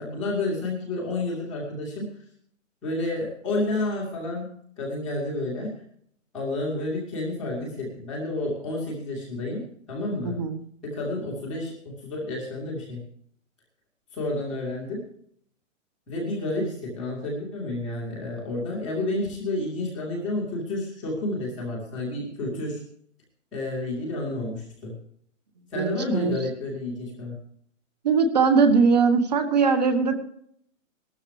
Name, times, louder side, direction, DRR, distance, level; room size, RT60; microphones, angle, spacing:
voice 1, 0.0-2.0 2.8-4.5 4.8-5.7 6.3-10.4 10.8-13.0 14.1-15.0 16.1-22.8 23.5-25.0 25.7-27.3, left 2 dB, ahead, -17 dB, 0.7 m, -30 dB
voice 2, 10.2-10.6 22.5-22.7 25.7-26.3 28.0-30.1, right 5 dB, 30° right, 9 dB, 1.3 m, -21 dB
18.5 x 13.5 x 3.3 m, 0.66 s
hypercardioid pair, 180°, 40 cm